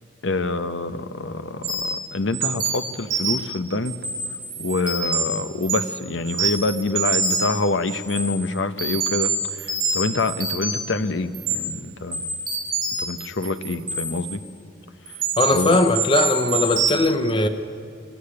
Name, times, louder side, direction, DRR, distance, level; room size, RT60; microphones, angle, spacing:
voice 1, 0.2-3.9 4.6-9.3 9.6-12.2 13.0-14.4 15.5-15.8, left 3 dB, 80° left, 11 dB, 0.9 m, -26 dB
sound 1, 1.6-2.0 2.3-3.5 3.9-5.2 5.6-6.0 6.3-7.6 7.9-8.3 8.8-10.9 11.3-11.6 12.1-14.3 15.1-16.9, right 4 dB, 50° right, 4.6 m, -25 dB
voice 2, 15.4-17.5, left 2 dB, 25° left, 8 dB, 0.8 m, -19 dB
22.5 x 13.5 x 9.8 m, 2.4 s
head